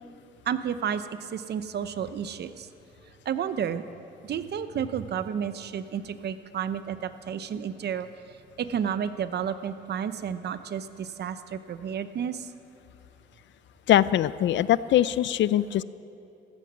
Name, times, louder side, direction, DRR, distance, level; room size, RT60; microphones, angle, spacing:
voice 1, 0.5-2.7 3.2-3.8 4.2-8.1 8.6-12.5, right 8 dB, 55° right, 12 dB, 0.8 m, -31 dB
voice 2, 13.9-15.8, left 12 dB, 65° left, 17 dB, 0.5 m, -22 dB
15.5 x 13.5 x 6.2 m, 2.8 s
cardioid pair, 90°, 20 cm